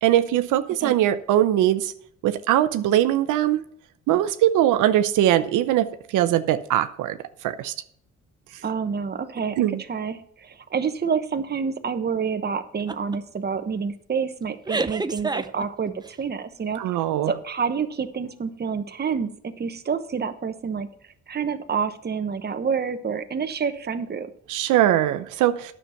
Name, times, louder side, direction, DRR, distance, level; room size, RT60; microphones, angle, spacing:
voice 1, 0.0-1.9 2.2-3.6 4.1-7.2 7.4-7.7 9.6-9.8 16.8-17.3 24.5-25.7, right 12 dB, 85° right, 11 dB, 0.7 m, -21 dB
voice 2, 8.6-16.8 17.3-20.9 21.3-24.3, right 6 dB, 35° right, 8 dB, 1.1 m, -28 dB
sound 1, 12.9-13.2 13.6-13.8 14.7-16.1, right 3 dB, 15° right, 0.6 m, -28 dB
10.0 x 6.7 x 5.7 m, 0.64 s
cardioid pair, 90°, 30 cm